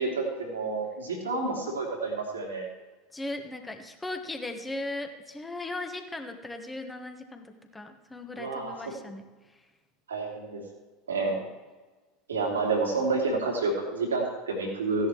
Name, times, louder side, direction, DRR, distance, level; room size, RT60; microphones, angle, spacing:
voice 1, 0.0-2.7 8.3-8.8 10.1-10.6 11.1-11.4 12.3-15.1, right 3 dB, 80° right, -1 dB, 2.6 m, -29 dB
voice 2, 3.1-9.3, left 2 dB, 10° left, 5 dB, 1.5 m, -37 dB
15.5 x 10.5 x 3.1 m, 1.3 s
figure-of-eight pair, 75°, 0 cm